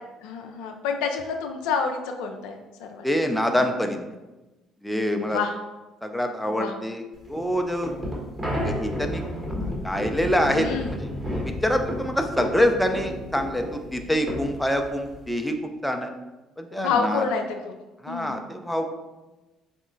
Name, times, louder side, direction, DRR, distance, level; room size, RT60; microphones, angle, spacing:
voice 1, 0.2-3.0 5.3-5.5 6.6-6.7 10.5-11.0 16.8-17.7 18.1-18.4, left 5 dB, 70° left, 4 dB, 0.3 m, -28 dB
voice 2, 3.0-4.1 4.8-5.4 6.0-7.0 7.3-7.9 8.6-9.3 9.6-11.1 11.4-15.6 15.8-16.1 16.6-17.2 18.0-18.9, equal, 5° left, 5 dB, 0.5 m, -25 dB
sound 1, 7.2-15.3, equal, 30° right, 1.4 m, -32 dB
4.1 x 3.5 x 2.6 m, 1.1 s
hypercardioid pair, 50°, 0 cm